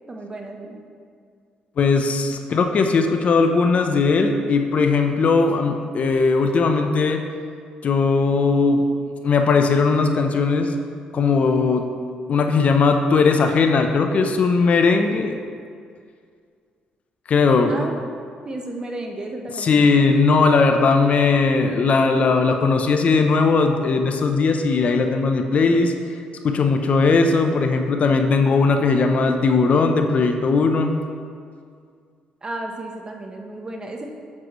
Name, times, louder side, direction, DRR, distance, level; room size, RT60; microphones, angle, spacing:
voice 1, 0.1-0.8 17.7-17.9 18.4-20.1 32.4-34.1, right 2 dB, 30° right, 2 dB, 1.0 m, -33 dB
voice 2, 1.8-7.2 7.8-8.8 9.2-10.7 11.1-11.9 12.3-15.4 17.3-17.7 19.6-25.9 26.4-30.9, left 4 dB, 50° left, 5 dB, 0.6 m, -18 dB
7.5 x 7.5 x 3.1 m, 2.2 s
cardioid pair, 80°, 3 cm